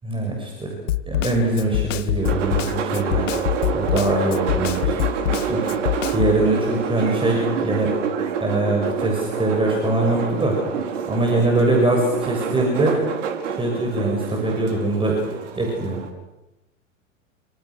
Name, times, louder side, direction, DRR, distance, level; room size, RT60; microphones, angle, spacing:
voice 1, 0.0-0.8 1.1-3.4 3.7-5.0 5.5-5.6 6.1-7.9 8.4-10.6 11.1-13.0 13.5-15.2 15.6-16.0, right 2 dB, 10° right, 0 dB, 7.4 m, -22 dB
Snare drum, 0.9-6.4, left 13 dB, 65° left, 1.5 m, -24 dB
sound 1, 2.2-16.1, right 6 dB, 60° right, 4.9 m, -27 dB
29.0 x 27.0 x 6.6 m, 0.94 s
hypercardioid pair, 100°, 41 cm